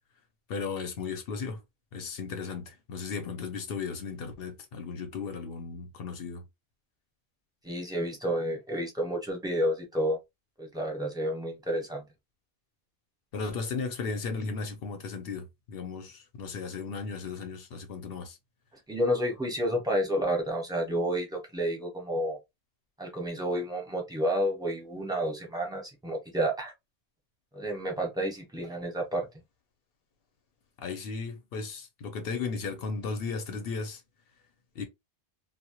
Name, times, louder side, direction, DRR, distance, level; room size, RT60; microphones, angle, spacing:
voice 1, 0.5-1.6 1.9-6.5 13.3-18.4 30.8-34.0 34.8-34.9, left 5 dB, 65° left, 0.8 m, -35 dB
voice 2, 7.6-10.2 10.6-12.0 18.9-22.4 23.0-26.7 27.5-29.3, equal, 5° right, 0.7 m, -30 dB
2.1 x 2.1 x 2.8 m
omnidirectional pair, 1.1 m